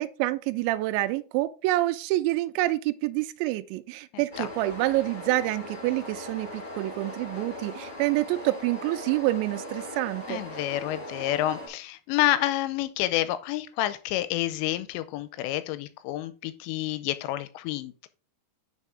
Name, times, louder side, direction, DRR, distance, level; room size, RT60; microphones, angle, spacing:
voice 1, 0.0-10.4, right 17 dB, 85° right, 2.7 m, -27 dB
voice 2, 4.1-4.5 10.3-18.1, left 14 dB, 80° left, 2.7 m, -29 dB
sound 1, 4.3-11.7, left 1 dB, 35° left, 2.3 m, -39 dB
8.1 x 5.3 x 3.6 m
omnidirectional pair, 5.4 m